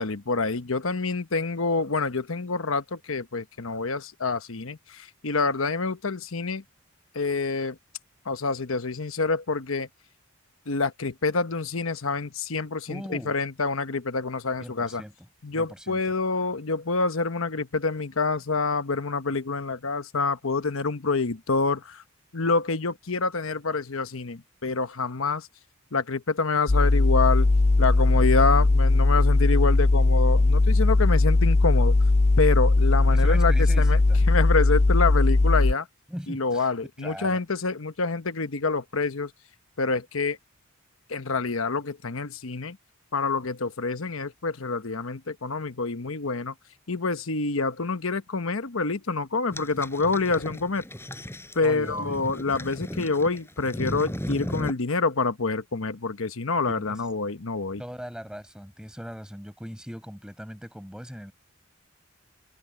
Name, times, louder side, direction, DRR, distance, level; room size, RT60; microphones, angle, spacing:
voice 1, 0.0-6.6 7.1-7.8 8.2-9.9 10.7-15.0 15.4-22.0 22.3-25.5 25.9-27.5 27.8-32.0 32.4-34.0 34.3-35.9 36.3-39.3 39.8-40.4 41.1-42.8 43.1-46.5 46.9-50.8 51.5-57.8, left 4 dB, 70° left, 1.1 m, -27 dB
voice 2, 12.9-13.3 14.6-15.1 15.5-16.0 33.1-34.2 36.1-36.7 37.0-37.4 51.6-52.2 56.8-57.0 57.8-61.3, equal, 5° right, 5.1 m, -39 dB
sound 1, 26.7-35.7, left 2 dB, 35° left, 0.5 m, -19 dB
sound 2, 49.5-54.7, equal, 10° left, 8.0 m, -36 dB
head